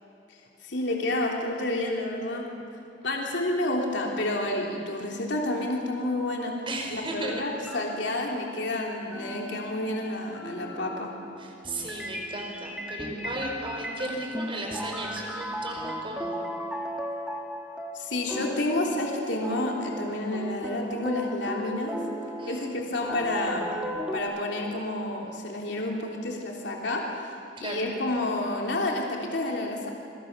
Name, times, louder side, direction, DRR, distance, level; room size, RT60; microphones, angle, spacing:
voice 1, 0.6-2.4 3.0-6.5 6.9-11.1 17.9-21.9 22.5-23.7 24.1-27.2 27.6-29.9, left 1 dB, 70° left, -1 dB, 3.4 m, -29 dB
voice 2, 6.7-7.4 11.4-16.4 22.4-22.8 27.6-27.8, right 2 dB, 30° right, 1 dB, 5.2 m, -35 dB
sound 1, 7.3-8.5 9.1-24.2, equal, 5° right, 2.2 m, -36 dB
28.0 x 23.5 x 6.9 m, 2.8 s
head